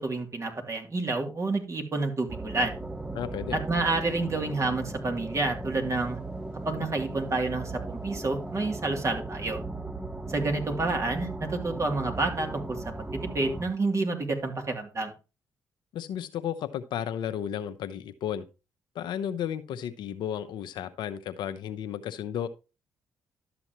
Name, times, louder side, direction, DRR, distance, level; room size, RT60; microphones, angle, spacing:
voice 1, 0.0-2.7 3.5-6.2 6.6-9.6 10.3-13.1 13.3-15.1, right 3 dB, 40° right, 2.8 m, -29 dB
sound 1, 2.3-13.6, right 2 dB, 10° right, 1.2 m, -37 dB
voice 2, 3.1-3.6 15.9-18.5 18.9-22.5, left 9 dB, 75° left, 0.8 m, -33 dB
12.0 x 7.0 x 3.0 m
supercardioid pair, 55°, 8 cm